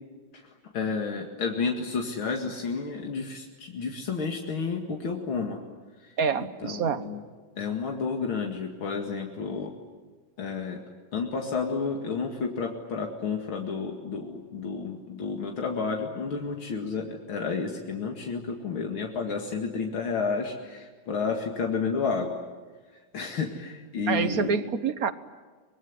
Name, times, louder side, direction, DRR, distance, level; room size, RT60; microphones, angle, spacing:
voice 1, 0.7-5.6 6.0-6.1 6.4-7.2 7.6-9.7 10.4-10.8 11.1-22.3 23.1-24.6, left 5 dB, 85° left, 2 dB, 3.0 m, -31 dB
voice 2, 6.2-7.0 24.1-25.1, right 6 dB, 50° right, 12 dB, 1.5 m, -27 dB
25.0 x 21.0 x 9.7 m, 1.4 s
omnidirectional pair, 2.2 m